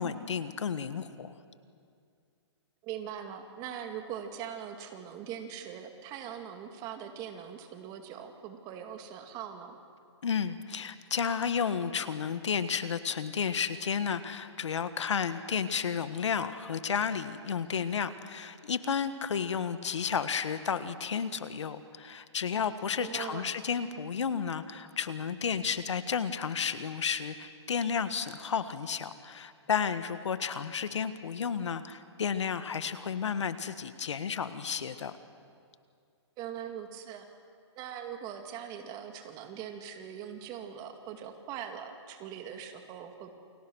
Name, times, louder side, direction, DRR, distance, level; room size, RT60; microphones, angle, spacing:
voice 1, 0.0-1.3 10.2-35.1, left 7 dB, 80° left, 12 dB, 1.6 m, -32 dB
voice 2, 2.8-9.8 23.0-23.5 36.4-37.3 37.8-43.3, right 9 dB, 25° right, 6 dB, 2.3 m, -41 dB
29.5 x 22.5 x 6.4 m, 2.3 s
hypercardioid pair, 150°, 15 cm